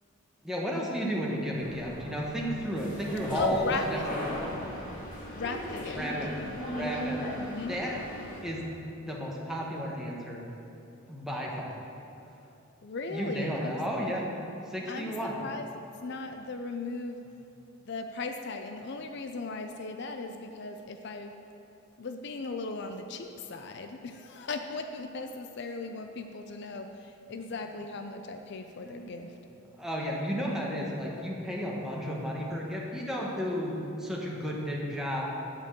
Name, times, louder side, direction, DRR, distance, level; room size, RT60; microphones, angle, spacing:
voice 1, 0.4-3.6 3.9-4.0 4.3-4.4 5.9-6.3 6.7-7.2 7.6-8.0 8.4-8.6 9.1-10.4 11.1-11.8 13.1-14.3 14.7-15.4 28.8-29.1 29.8-35.2, equal, ahead, -3 dB, 1.2 m, -33 dB
sound 1, 1.6-8.4, equal, 40° left, 2.0 m, -38 dB
voice 2, 3.3-4.0 5.3-6.0 7.4-7.8 12.8-13.8 14.9-15.7 16.0-17.2 17.8-21.4 22.0-29.4, left 3 dB, 55° left, 6 dB, 0.5 m, -37 dB
8.9 x 5.2 x 7.8 m, 2.8 s
head